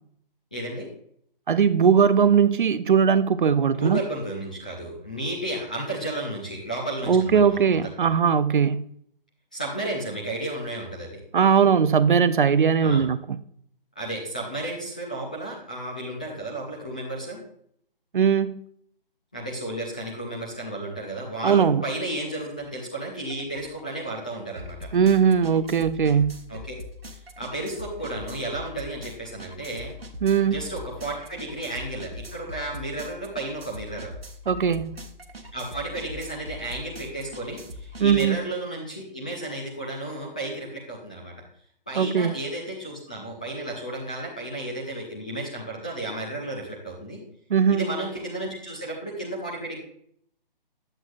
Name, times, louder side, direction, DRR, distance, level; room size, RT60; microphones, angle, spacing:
voice 1, 0.5-0.9 3.7-8.1 9.5-11.2 12.8-13.1 14.0-17.4 19.3-24.9 26.5-26.7 27.4-29.9 30.4-34.1 35.5-41.3 41.9-47.2 47.7-49.8, right 1 dB, 10° left, -3 dB, 0.4 m, -33 dB
voice 2, 1.5-4.0 7.1-8.9 11.3-13.4 18.1-18.6 21.4-21.8 24.9-26.4 30.2-30.6 34.5-35.0 38.0-38.4 42.0-42.3 47.5-47.9, right 7 dB, 60° right, 14 dB, 0.6 m, -20 dB
sound 1, 22.6-22.7 23.1-38.2, left 1 dB, 85° right, 1.1 m, -42 dB
9.7 x 7.8 x 2.4 m, 0.66 s
figure-of-eight pair, 145°, 29 cm